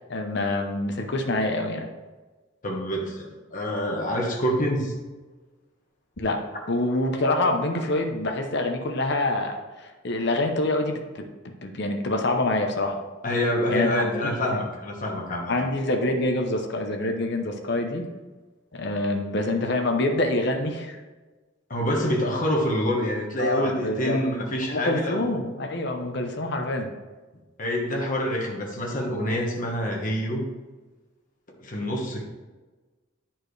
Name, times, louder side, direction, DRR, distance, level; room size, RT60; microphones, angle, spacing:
voice 1, 0.1-1.9 6.2-6.4 6.7-13.0 13.7-14.0 14.5-14.6 15.5-18.1 18.7-21.0 23.4-24.2 24.7-26.9, left 2 dB, 55° left, 4 dB, 0.9 m, -26 dB
voice 2, 2.6-4.9 13.2-15.6 21.7-25.3 27.6-30.4 31.6-32.2, equal, 40° left, -1 dB, 1.4 m, -26 dB
10.0 x 4.4 x 3.3 m, 1.3 s
head